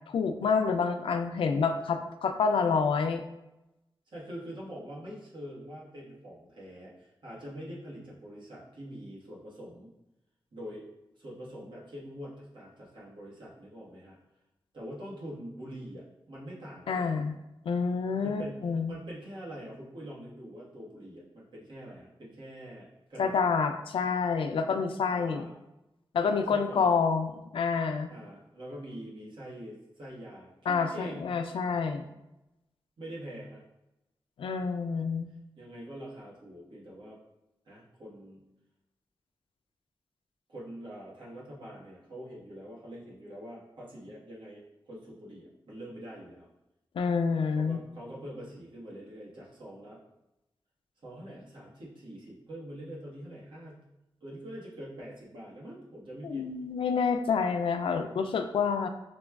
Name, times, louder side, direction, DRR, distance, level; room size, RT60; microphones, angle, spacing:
voice 1, 0.1-3.2 16.9-17.3 17.7-19.0 23.2-25.5 26.1-28.1 30.7-32.0 34.4-35.3 46.9-47.8 56.2-58.9, left 5 dB, 90° left, 7 dB, 0.3 m, -28 dB
voice 2, 4.1-9.9 10.5-10.9 11.1-14.2 14.7-17.2 18.2-23.4 25.1-25.5 26.2-27.1 28.1-31.3 33.0-33.6 35.6-37.2 37.7-38.4 40.5-46.5 47.5-50.0 51.0-53.8 54.2-56.5, equal, 65° right, -5 dB, 1.1 m, -44 dB
5.9 x 2.3 x 2.3 m, 0.92 s
wide cardioid pair, 165°, 9 cm